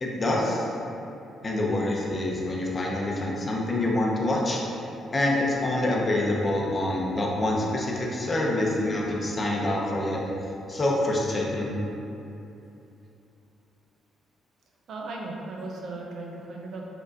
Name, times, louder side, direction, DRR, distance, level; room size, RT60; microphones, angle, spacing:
voice 1, 0.0-0.7 1.4-4.6 5.1-10.2 10.7-11.7, left 1 dB, 30° left, -2 dB, 0.7 m, -26 dB
voice 2, 14.9-16.9, right 2 dB, 65° right, -1 dB, 0.6 m, -37 dB
4.9 x 3.6 x 2.5 m, 2.8 s
cardioid pair, 90°, 0 cm